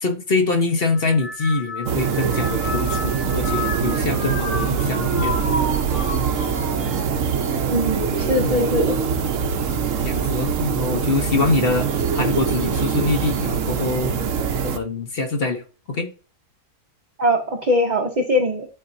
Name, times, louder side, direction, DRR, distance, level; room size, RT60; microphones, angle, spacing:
voice 1, 0.0-5.4 8.4-8.7 10.0-14.2 14.6-15.6 15.9-16.1, left 3 dB, 40° left, 1.0 m, -24 dB
sound 1, 0.8-10.4 10.8-11.4 12.4-12.8, left 2 dB, 70° left, 3.1 m, -32 dB
sound 2, 1.9-14.8, right 7 dB, 60° right, 1.0 m, -23 dB
voice 2, 7.7-8.9 17.2-18.7, left 1 dB, 35° right, 0.7 m, -21 dB
11.5 x 4.1 x 2.7 m
omnidirectional pair, 1.7 m